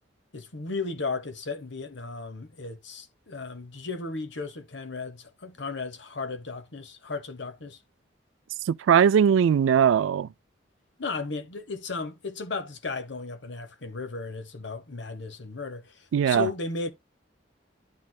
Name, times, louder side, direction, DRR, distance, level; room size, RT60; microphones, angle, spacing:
voice 1, 0.3-7.8 11.0-16.9, left 4 dB, 70° left, 1.1 m, -35 dB
voice 2, 8.7-10.3 16.1-16.5, right 8 dB, 85° right, 0.3 m, -20 dB
11.5 x 4.2 x 2.3 m
head